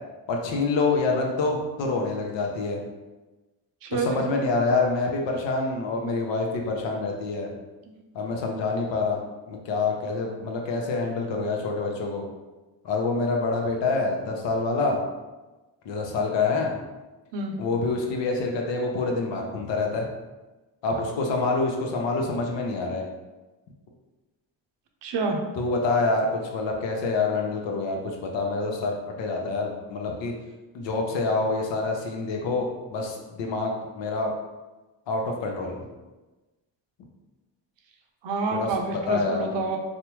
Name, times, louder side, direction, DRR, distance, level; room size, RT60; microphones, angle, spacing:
voice 1, 0.3-2.8 3.9-7.5 8.1-9.2 9.5-12.2 12.8-15.0 15.8-16.7 17.6-20.1 20.8-23.0 25.6-30.3 30.7-34.3 35.1-35.8 38.5-38.7 39.1-39.6, left 3 dB, 75° left, 1 dB, 0.7 m, -26 dB
voice 2, 3.8-4.2 17.3-17.5 25.0-25.4 38.2-39.8, right 3 dB, 70° right, 3 dB, 0.6 m, -28 dB
3.3 x 2.1 x 3.0 m, 1.2 s
supercardioid pair, 60°, 45 cm